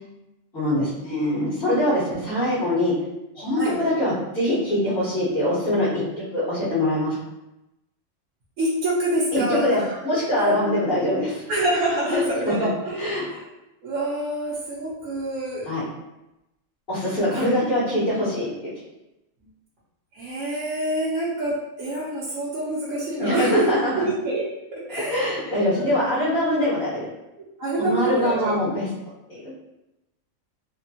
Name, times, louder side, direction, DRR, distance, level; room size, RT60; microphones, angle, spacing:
voice 1, 0.5-2.9 3.3-6.0 6.3-7.1 9.3-9.8 10.0-11.4 12.1-12.7 13.0-13.2 15.6-15.8 16.9-18.7 23.2-23.9 25.0-27.1 27.8-28.9 29.3-29.5, left 1 dB, 45° left, -13 dB, 1.4 m, -23 dB
voice 2, 8.6-10.0 10.3-10.8 11.5-13.5 13.8-15.7 17.3-17.5 20.1-24.4 24.7-26.1 27.6-28.6, right 1 dB, 80° right, -7 dB, 1.1 m, -26 dB
3.4 x 2.2 x 2.7 m, 0.92 s
omnidirectional pair, 1.4 m